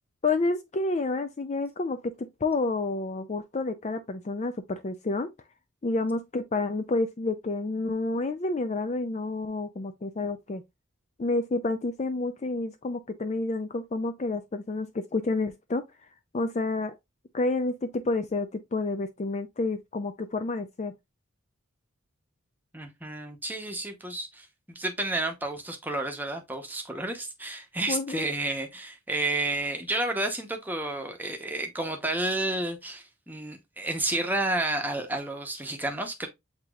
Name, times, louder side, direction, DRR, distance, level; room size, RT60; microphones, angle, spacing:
voice 1, 0.2-5.3 5.8-10.6 11.2-15.8 16.3-17.0 17.3-20.9 27.9-28.3, left 3 dB, 30° left, 0.4 m, -29 dB
voice 2, 22.7-36.3, right 2 dB, 10° right, 0.8 m, -31 dB
7.9 x 2.9 x 2.3 m
head